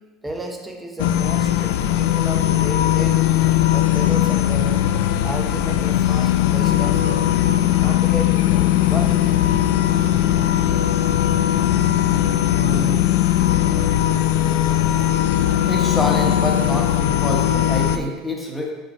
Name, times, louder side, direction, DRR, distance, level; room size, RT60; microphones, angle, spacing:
voice 1, 0.2-3.3 3.7-7.4 7.8-9.4, right 1 dB, 10° right, 3 dB, 0.7 m, -33 dB
sound 1, 1.0-18.0, left 12 dB, 80° left, 0.3 m, -19 dB
voice 2, 12.5-13.1 15.7-18.7, left 1 dB, 10° left, -1 dB, 1.2 m, -26 dB
5.3 x 5.2 x 4.2 m, 1.3 s
supercardioid pair, 130°, 0 cm